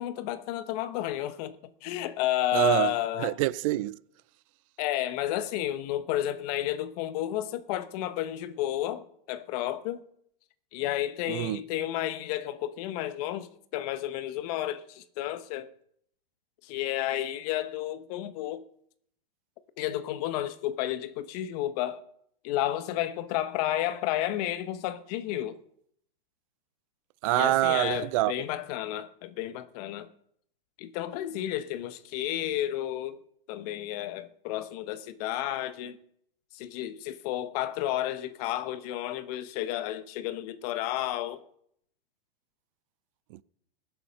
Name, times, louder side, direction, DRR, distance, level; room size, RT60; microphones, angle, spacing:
voice 1, 0.0-3.4 4.8-10.0 10.7-15.7 16.6-18.6 19.8-22.0 22.4-25.6 27.3-30.1 30.8-33.2 33.5-36.0 36.5-41.4, left 13 dB, 40° left, 1.0 m, -32 dB
voice 2, 2.5-2.9 3.2-4.0 11.3-11.6 27.2-28.3 43.3-43.4, right 17 dB, 35° right, 0.4 m, -26 dB
20.0 x 7.1 x 5.7 m
hypercardioid pair, 140°, 29 cm